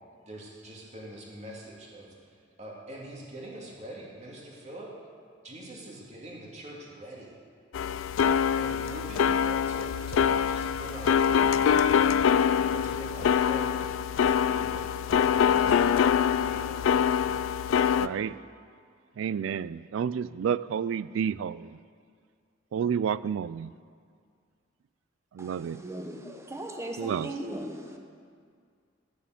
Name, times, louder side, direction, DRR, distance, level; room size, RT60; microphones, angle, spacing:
voice 1, 0.3-4.9 5.4-7.3 8.6-12.3 12.7-13.9 14.3-15.0 15.4-17.0, right 1 dB, 35° right, -3 dB, 2.4 m, -44 dB
sound 1, 7.7-18.1, left 7 dB, 85° left, 0.3 m, -24 dB
voice 2, 17.9-18.4 19.2-21.8 22.7-23.7 25.3-25.8 27.0-27.3, right 7 dB, 70° right, 18 dB, 0.3 m, -30 dB
voice 3, 25.8-28.0, right 1 dB, 15° right, 3 dB, 1.1 m, -38 dB
13.0 x 6.8 x 7.6 m, 2.1 s
head